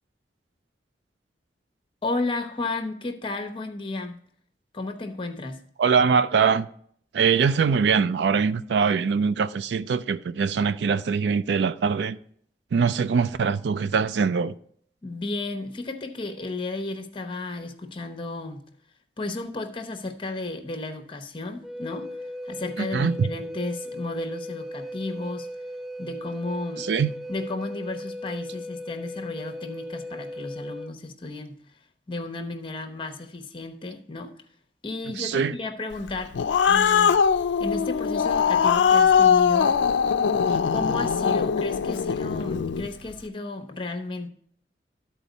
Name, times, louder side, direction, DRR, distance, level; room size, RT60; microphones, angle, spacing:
voice 1, 2.0-4.2 4.7-5.6 15.0-18.7 19.2-22.1 22.4-25.5 26.0-26.9 27.3-31.6 32.1-34.3 34.8-36.4 36.7-37.2 37.6-39.7 40.7-44.3, left 2 dB, 30° left, 0.9 m, -33 dB
voice 2, 5.8-6.7 7.1-12.2 12.7-14.5 22.8-23.3 26.8-27.1 35.1-35.6, right 6 dB, 75° right, 0.4 m, -23 dB
Wind instrument woodwind instrument, 21.6-30.9, equal, ahead, 0.3 m, -37 dB
Growling, 36.1-42.9, left 7 dB, 85° left, 0.4 m, -21 dB
12.5 x 4.5 x 4.0 m
head